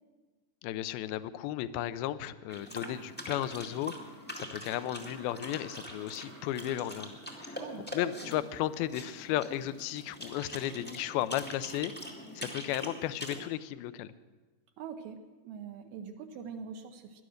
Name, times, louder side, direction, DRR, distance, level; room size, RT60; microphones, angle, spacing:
voice 1, 0.6-3.9 4.4-7.6 7.9-11.9 12.4-14.1, left 13 dB, 80° left, 14 dB, 2.4 m, -34 dB
sound 1, 2.5-13.4, equal, 10° left, 0.6 m, -44 dB
sound 2, 3.5-10.6, right 3 dB, 50° right, 1.0 m, -57 dB
voice 2, 7.6-7.9 14.8-15.2 15.4-17.2, right 6 dB, 75° right, 5 dB, 2.7 m, -43 dB
19.0 x 11.5 x 6.4 m, 1.3 s
omnidirectional pair, 4.5 m